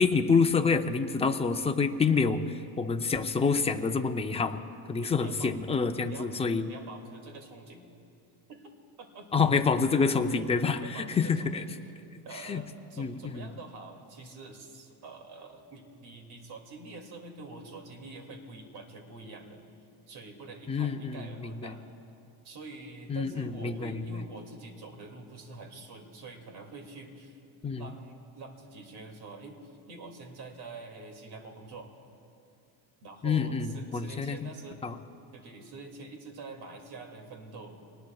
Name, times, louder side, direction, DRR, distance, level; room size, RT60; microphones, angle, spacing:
voice 1, 0.0-4.6 4.9-6.7 9.3-11.6 12.3-12.6 13.0-13.5 20.7-21.7 23.1-24.2 27.6-27.9 33.2-34.5 34.8-35.0, left 5 dB, 15° left, 6 dB, 0.6 m, -27 dB
voice 2, 5.0-5.5 6.1-6.3 6.7-7.8 8.5-8.7 9.0-9.3 10.0-10.1 10.8-11.7 12.2-19.7 20.1-21.8 22.4-27.4 27.8-29.6 29.9-31.9 33.0-34.8 35.3-37.8, right 3 dB, 55° right, 3 dB, 2.6 m, -46 dB
26.0 x 19.5 x 2.4 m, 2.7 s
cardioid pair, 130°, 46 cm